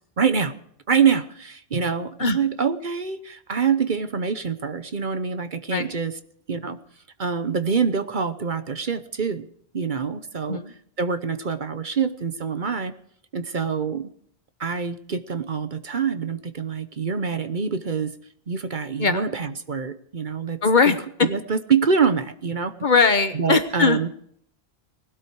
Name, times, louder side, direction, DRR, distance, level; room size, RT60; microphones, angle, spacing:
voice 1, 0.2-0.5 0.9-6.1 6.5-6.8 7.2-9.5 9.7-10.6 11.0-12.9 13.3-14.1 14.6-18.1 18.5-20.6 21.2-22.7 23.3-24.1, right 6 dB, 50° right, 11 dB, 1.0 m, -25 dB
voice 2, 20.6-21.3 22.8-24.0, left 4 dB, 50° left, 10 dB, 1.2 m, -20 dB
19.5 x 12.5 x 4.7 m, 0.65 s
omnidirectional pair, 1.1 m